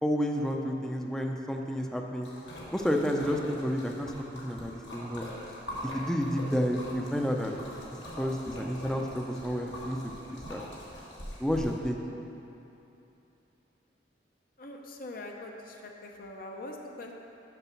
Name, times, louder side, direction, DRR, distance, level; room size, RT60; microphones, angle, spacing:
voice 1, 0.0-2.3 2.7-5.3 5.8-7.5 8.2-10.1 10.5-10.6 11.4-12.0, equal, 5° left, 2 dB, 0.5 m, -30 dB
Splash splatter, 2.2-11.8, equal, 80° left, 1.6 m, -43 dB
voice 2, 14.6-17.1, left 2 dB, 55° left, 1 dB, 0.7 m, -43 dB
6.9 x 5.9 x 5.8 m, 2.9 s
head